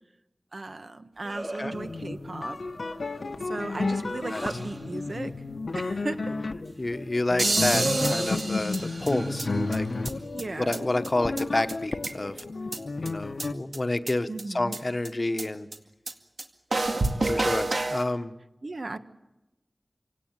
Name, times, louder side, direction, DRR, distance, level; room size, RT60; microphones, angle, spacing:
voice 1, 0.5-2.6 3.4-5.3 5.7-6.4 10.3-10.9 14.3-14.8 18.6-19.0, right 2 dB, 60° right, 9 dB, 1.4 m, -36 dB
sound 1, 1.2-2.1 2.8-3.2 3.6-4.9 7.4-10.1, right 1 dB, 40° right, 2.3 m, -35 dB
sound 2, 1.7-13.5, left 3 dB, 80° left, 1.1 m, -32 dB
voice 2, 6.8-10.3 10.6-12.4 13.0-15.7 17.3-18.4, left 2 dB, 45° left, 10 dB, 1.1 m, -29 dB
sound 3, 7.4-9.4 9.7-9.8 10.0-10.1 10.4-10.5 10.7-10.8 11.0-11.1 11.4-11.5 11.7-12.4 12.7-12.8 13.1-13.2 13.4-13.5 13.7-13.8 14.1-14.2 14.4-14.5 14.7-14.8 15.0-15.1 15.4-15.5 15.7-15.8 16.1-16.2 16.4-16.5 16.7-18.0, right 2 dB, 80° right, 2.1 m, -28 dB
27.0 x 17.5 x 8.9 m, 0.97 s
wide cardioid pair, 60°, 0 cm